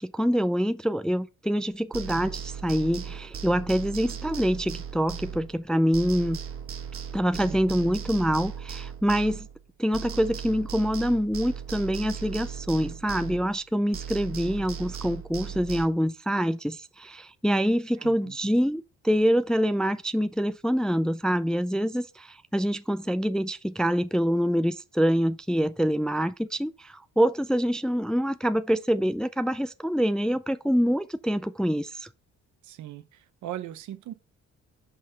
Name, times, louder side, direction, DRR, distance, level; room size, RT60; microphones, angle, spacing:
voice 1, 0.0-6.4 7.1-9.5 9.8-32.1, equal, 5° left, 0.3 m, -25 dB
sound 1, 1.9-5.7 5.9-9.7 9.9-13.7 13.9-15.9, right 7 dB, 50° right, 1.1 m, -37 dB
voice 2, 7.4-7.9 18.0-18.6 32.6-34.1, right 12 dB, 75° right, 0.8 m, -40 dB
5.6 x 5.5 x 3.9 m
cardioid pair, 90°, 30 cm